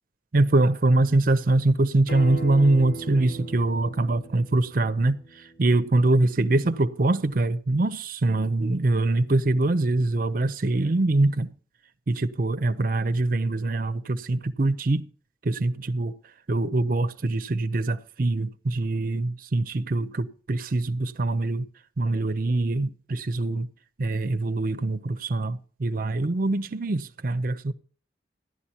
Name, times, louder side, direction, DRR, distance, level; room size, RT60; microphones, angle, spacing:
voice 1, 0.3-11.5 12.1-15.1 15.4-16.1 16.5-21.7 22.0-23.7 24.0-27.7, right 2 dB, 50° right, 0.6 m, -24 dB
Acoustic guitar, 2.1-7.3, right 2 dB, 70° left, 4.2 m, -40 dB
15.5 x 11.5 x 2.9 m
head